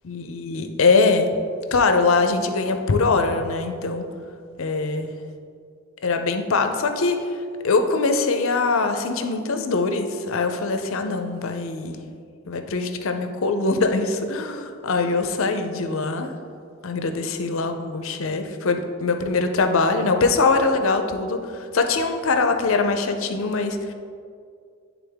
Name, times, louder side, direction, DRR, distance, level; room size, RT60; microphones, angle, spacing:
voice 1, 0.0-1.3 1.7-4.0 4.6-5.1 6.0-7.2 7.6-12.0 12.5-16.3 16.8-23.9, left 3 dB, 65° left, 6 dB, 0.5 m, -22 dB
10.5 x 3.7 x 3.5 m, 2.3 s
head